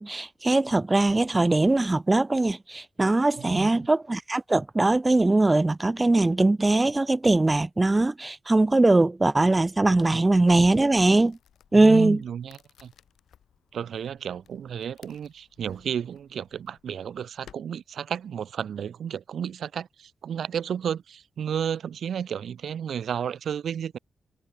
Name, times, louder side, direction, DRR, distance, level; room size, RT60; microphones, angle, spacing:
voice 1, 0.0-11.4 11.7-12.2, right 2 dB, 20° right, 0.5 m, -21 dB
voice 2, 3.4-3.7 10.1-10.2 11.7-12.9 13.7-24.0, right 8 dB, 75° right, 0.8 m, -32 dB
sound 1, 10.1-17.6, left 9 dB, 90° left, 7.5 m, -59 dB
wide cardioid pair, 115°, 0 cm